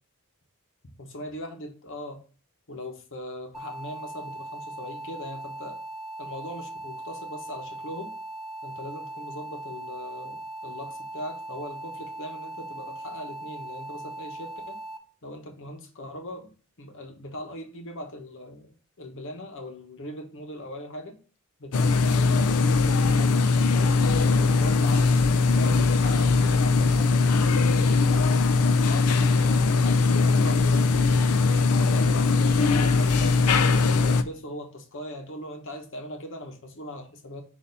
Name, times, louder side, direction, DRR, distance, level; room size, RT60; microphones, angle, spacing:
voice 1, 1.0-2.2 2.7-5.8 6.2-8.1 8.6-14.8 15.2-16.5 16.8-18.7 19.0-21.2 21.6-24.0 24.4-25.1 25.5-31.1 31.8-37.4, left 1 dB, 60° left, 4 dB, 1.1 m, -40 dB
sound 1, 3.5-15.0, right 2 dB, ahead, 0.8 m, -39 dB
sound 2, 21.7-34.2, left 4 dB, 85° left, 0.5 m, -21 dB
6.7 x 2.8 x 5.3 m, 0.38 s
head